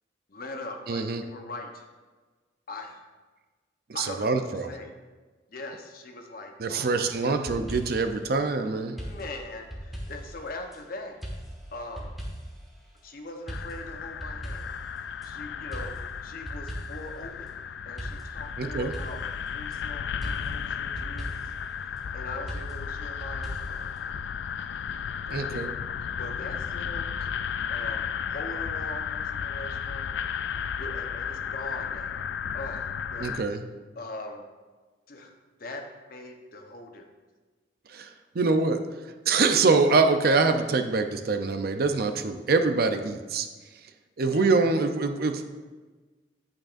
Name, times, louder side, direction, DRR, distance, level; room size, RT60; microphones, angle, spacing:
voice 1, 0.3-1.9 2.7-3.0 3.9-4.4 4.7-4.9 5.5-7.4 8.9-11.2 11.7-12.1 13.0-14.7 15.2-17.5 17.9-19.2 19.5-21.5 22.1-23.9 25.3-25.7 26.2-27.1 27.7-30.1 30.7-32.3 32.5-33.3 34.0-34.4 35.1-35.8 36.1-37.1 44.2-44.4, left 2 dB, 55° left, 3 dB, 0.9 m, -41 dB
voice 2, 0.9-1.2 3.9-4.7 6.6-9.0 18.6-18.9 25.3-25.7 33.2-33.6 37.9-38.1 38.3-38.8 39.3-43.5 44.2-45.4, right 4 dB, 55° right, 7 dB, 0.5 m, -24 dB
sound 1, 7.5-8.2 9.0-10.8 11.2-12.7 13.5-15.3 15.7-17.2 18.0-19.8 20.2-21.6 22.5-24.0, equal, ahead, 1.4 m, -39 dB
sound 2, 13.5-33.4, left 7 dB, 70° left, 0.3 m, -34 dB
8.8 x 8.7 x 2.5 m, 1.3 s
head